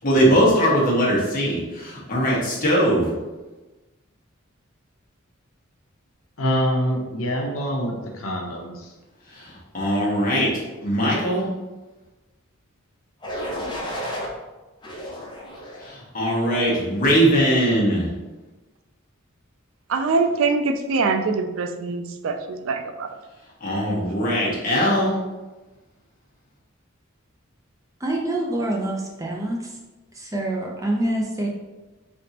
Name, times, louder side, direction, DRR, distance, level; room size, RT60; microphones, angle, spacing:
voice 1, 0.0-3.0 9.7-10.5 10.8-11.5 15.8-18.1 23.6-25.1, equal, 45° left, -5 dB, 1.1 m, -20 dB
voice 2, 6.4-8.9, equal, 85° left, 1 dB, 0.8 m, -25 dB
sound 1, 13.2-14.3 14.8-15.9 16.4-16.8, equal, 20° left, 0.7 m, -32 dB
voice 3, 19.9-23.1, right 4 dB, 75° right, 6 dB, 0.4 m, -23 dB
voice 4, 28.0-29.8 30.1-31.5, right 1 dB, 15° right, -1 dB, 0.5 m, -26 dB
3.9 x 3.4 x 2.8 m, 1.1 s
head